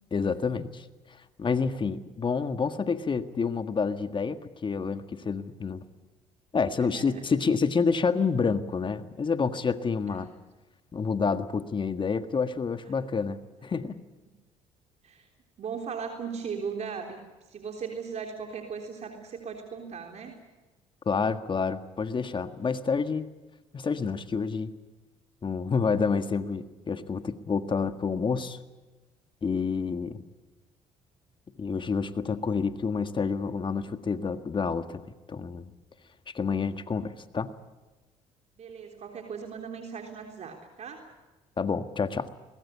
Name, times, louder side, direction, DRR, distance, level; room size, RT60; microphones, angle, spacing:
voice 1, 0.1-0.8 1.4-5.8 6.5-10.3 10.9-14.0 21.0-23.3 23.7-24.7 25.4-28.6 29.4-30.2 31.6-35.0 35.3-35.7 36.3-37.6 41.6-42.3, left 5 dB, 35° left, 10 dB, 1.7 m, -28 dB
voice 2, 6.8-7.3 10.1-10.3 15.0-15.3 15.6-17.2 17.4-20.4 38.6-41.1, right 6 dB, 55° right, 4 dB, 3.6 m, -38 dB
22.0 x 21.5 x 8.4 m, 1.2 s
supercardioid pair, 75°, 14 cm